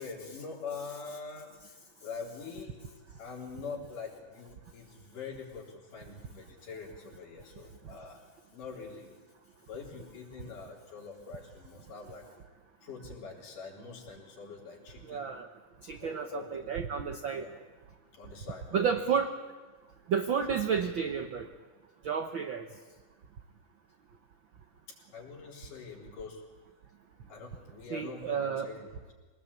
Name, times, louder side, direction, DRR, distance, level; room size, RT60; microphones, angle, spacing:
voice 1, 0.0-2.8 3.2-8.2 8.5-9.1 9.6-12.2 12.8-15.3 16.0-16.7 17.3-17.5 18.1-19.1 25.1-26.4 27.3-29.1, left 5 dB, 80° left, -1 dB, 5.5 m, -44 dB
voice 2, 15.0-15.5 15.8-17.5 18.7-19.3 20.1-21.5 22.0-22.7 27.9-28.7, right 7 dB, 75° right, 7 dB, 1.1 m, -31 dB
23.5 x 19.5 x 8.5 m, 1.3 s
omnidirectional pair, 3.7 m